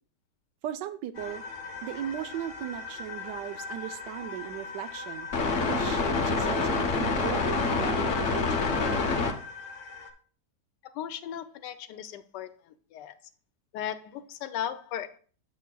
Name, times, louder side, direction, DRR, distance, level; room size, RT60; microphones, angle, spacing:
voice 1, 0.6-1.4 1.8-5.3 5.6-8.8, right 11 dB, 85° right, 10 dB, 1.3 m, -37 dB
sound 1, 1.2-10.1, left 4 dB, 50° left, 1.1 m, -30 dB
voice 2, 10.8-12.5 12.9-13.1 13.7-15.2, left 10 dB, 85° left, 11 dB, 1.3 m, -36 dB
8.4 x 8.3 x 2.3 m, 0.42 s
omnidirectional pair, 1.8 m